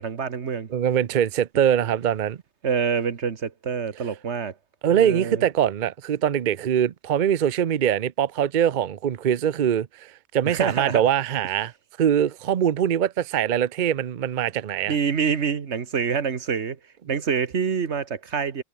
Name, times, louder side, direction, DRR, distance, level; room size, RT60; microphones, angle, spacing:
voice 1, 0.0-0.7 2.6-4.5 4.9-5.4 10.5-11.1 14.9-16.8 17.1-18.6, right 6 dB, 85° right, 1.7 m, -26 dB
voice 2, 0.7-2.4 4.8-11.7 12.0-14.9 17.1-17.2, right 9 dB, 50° right, 0.7 m, -23 dB
omnidirectional pair, 1.1 m